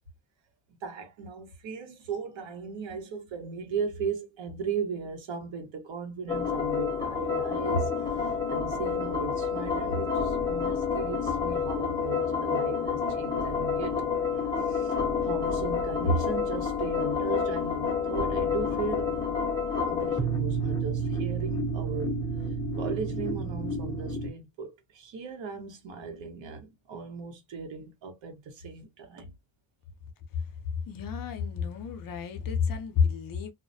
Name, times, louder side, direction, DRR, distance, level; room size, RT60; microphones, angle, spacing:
voice 1, 0.8-7.9 8.5-14.0 14.7-14.9 15.2-19.1 19.6-22.2 22.8-29.3, right 4 dB, 75° right, 1.1 m, -36 dB
sound 1, 6.3-24.3, left 4 dB, 10° left, 0.6 m, -29 dB
voice 2, 30.9-33.5, left 6 dB, 45° left, 0.6 m, -29 dB
2.3 x 2.1 x 2.6 m
cardioid pair, 130°, 46 cm